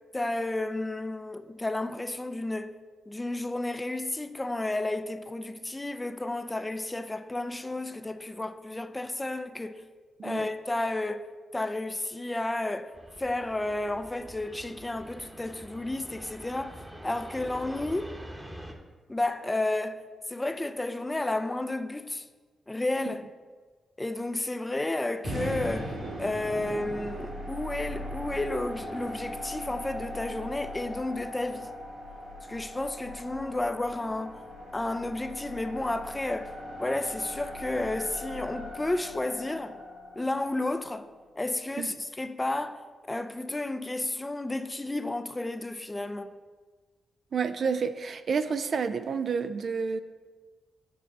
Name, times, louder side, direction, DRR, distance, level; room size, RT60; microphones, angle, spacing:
voice 1, 0.1-2.7 3.1-9.8 10.2-11.3 11.5-12.9 13.2-16.8 17.0-18.1 19.1-20.0 20.3-22.2 22.7-23.2 24.0-31.7 32.5-34.4 34.7-36.5 36.8-39.8 40.2-41.1 41.4-42.8 43.1-46.3, left 2 dB, 20° left, 0.5 m, -32 dB
Fixed-wing aircraft airplane, 12.9-18.7, equal, 15° right, 1.0 m, -45 dB
sound 1, 25.2-41.4, equal, 85° right, 2.4 m, -39 dB
voice 2, 47.3-50.0, right 5 dB, 65° right, 0.4 m, -29 dB
8.7 x 3.2 x 6.6 m
cardioid pair, 65°, 0 cm